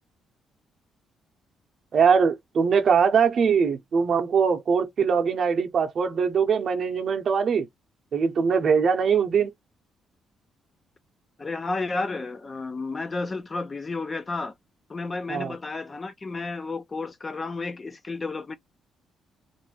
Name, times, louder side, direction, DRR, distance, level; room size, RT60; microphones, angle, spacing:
voice 1, 1.9-7.7 8.1-9.5 15.3-15.5, right 6 dB, 55° right, 0.7 m, -22 dB
voice 2, 11.4-14.5 14.9-18.6, left 3 dB, 30° left, 0.3 m, -32 dB
2.5 x 2.2 x 3.0 m
cardioid pair, 90°, 0 cm